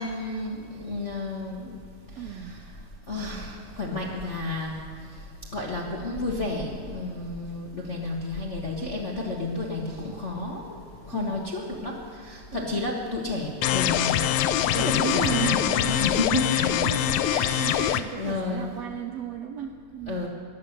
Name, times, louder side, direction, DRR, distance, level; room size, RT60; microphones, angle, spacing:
voice 1, 0.0-1.7 2.2-2.6 3.1-4.8 5.5-10.8 11.0-16.9 17.2-18.8 20.1-20.3, left 2 dB, 45° left, -3 dB, 0.9 m, -31 dB
voice 2, 2.2-2.6 11.1-11.5 12.5-12.9 14.8-15.9 16.5-20.3, right 8 dB, 80° right, 5 dB, 1.6 m, -35 dB
sound 1, 13.6-18.0, left 11 dB, 85° left, 1.5 m, -24 dB
19.0 x 11.5 x 6.6 m, 2.1 s
omnidirectional pair, 3.7 m